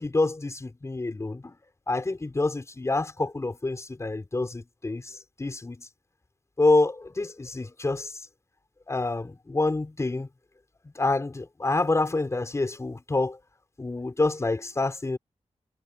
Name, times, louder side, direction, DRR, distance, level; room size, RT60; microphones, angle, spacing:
voice 1, 0.0-1.5 1.9-5.0 5.4-5.8 6.6-8.1 8.9-10.3 11.0-13.4 13.8-15.2, left 2 dB, 25° left, 5.5 m, -27 dB
wide cardioid pair, 165°, 12 cm